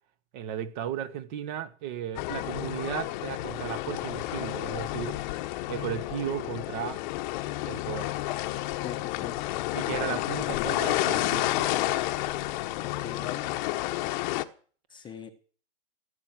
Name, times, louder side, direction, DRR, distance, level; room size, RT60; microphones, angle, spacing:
voice 1, 0.3-5.1 5.7-7.0 7.7-8.1 9.7-11.9, right 9 dB, 40° right, 1.4 m, -35 dB
sound 1, 2.1-14.4, left 17 dB, 40° left, 1.0 m, -30 dB
voice 2, 8.8-9.4 12.8-13.5 14.9-15.3, left 7 dB, 15° left, 1.0 m, -41 dB
16.5 x 8.3 x 7.6 m
hypercardioid pair, 145°, 36 cm